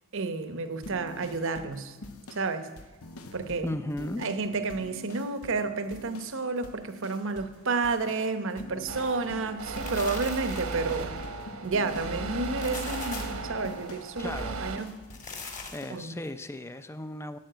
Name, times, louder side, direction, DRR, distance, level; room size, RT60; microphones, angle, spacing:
voice 1, 0.1-2.0 2.3-2.7 3.3-3.7 4.2-11.1 11.6-14.9 15.9-16.2, right 3 dB, 60° right, 0.9 m, -31 dB
sound 1, 0.8-6.4 6.6-7.6 7.8-15.3 15.6-16.0, left 2 dB, 75° left, 0.9 m, -45 dB
voice 2, 3.6-4.2 14.2-14.6 15.7-17.4, left 1 dB, 10° left, 0.5 m, -35 dB
sound 2, 8.9-14.8, right 3 dB, 80° right, 1.3 m, -36 dB
sound 3, 9.4-10.9 12.4-13.5 15.0-16.0, left 4 dB, 35° left, 1.6 m, -41 dB
11.5 x 8.5 x 7.8 m
head